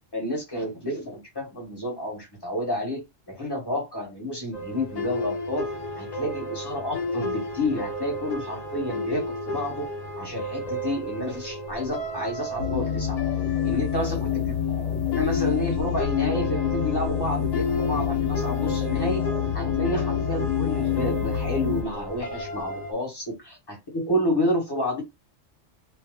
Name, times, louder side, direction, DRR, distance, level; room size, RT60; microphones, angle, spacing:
voice 1, 0.1-5.7 6.0-9.9 10.2-13.2 13.6-14.5 15.0-19.2 19.5-25.0, left 1 dB, 20° left, 1.2 m, -30 dB
sound 1, 4.5-22.9, left 1 dB, 55° left, 0.4 m, -33 dB
sound 2, 12.6-21.8, left 10 dB, 80° left, 1.2 m, -27 dB
2.9 x 2.0 x 3.5 m
omnidirectional pair, 1.2 m